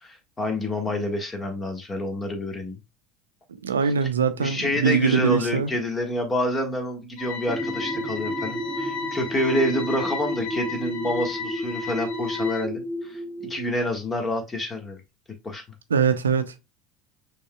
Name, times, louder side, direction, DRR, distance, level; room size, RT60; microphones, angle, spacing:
voice 1, 0.0-2.8 3.8-3.9 4.4-15.0 15.4-15.6, left 1 dB, 25° left, 1.4 m, -28 dB
voice 2, 3.6-5.7 15.9-16.7, right 6 dB, 85° right, 0.5 m, -22 dB
sound 1, 7.2-12.6, left 5 dB, 75° left, 0.7 m, -35 dB
sound 2, 7.4-13.7, equal, 15° right, 1.8 m, -32 dB
5.3 x 3.5 x 2.2 m
hypercardioid pair, 75°, 0 cm